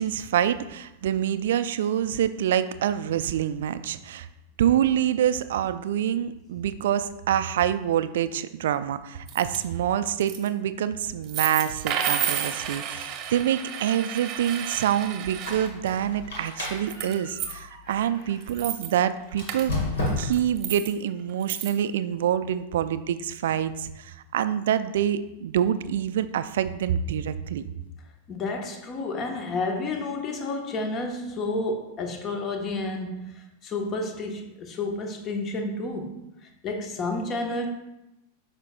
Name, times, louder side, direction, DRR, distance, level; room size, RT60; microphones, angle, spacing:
voice 1, 0.0-4.3 4.6-19.7 20.2-27.7, right 10 dB, 60° right, 12 dB, 0.4 m, -26 dB
sound 1, 9.3-9.6 10.0-10.5 11.2-15.7 16.4-17.5 17.9-18.0 18.3-18.9 19.5-19.7 20.2-20.9 21.4-21.7, right 9 dB, 35° right, 0.9 m, -31 dB
Squeak, 15.3-18.5 19.3-20.6, left 2 dB, 60° left, 1.9 m, -33 dB
voice 2, 28.3-36.2 36.6-37.7, left 2 dB, 30° left, 4 dB, 1.1 m, -30 dB
9.3 x 5.8 x 2.3 m, 0.93 s
figure-of-eight pair, 90°, 0 cm